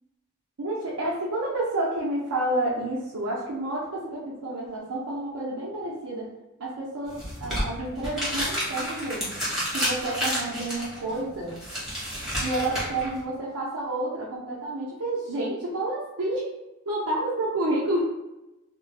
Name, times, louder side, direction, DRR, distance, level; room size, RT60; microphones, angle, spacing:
voice 1, 0.6-6.3 6.6-9.3 9.7-11.6 12.4-16.5 16.9-18.0, right 1 dB, 75° right, -7 dB, 0.6 m, -29 dB
sound 1, 7.1-13.2, equal, ahead, 1.0 m, -30 dB
2.4 x 2.2 x 3.3 m, 0.96 s
head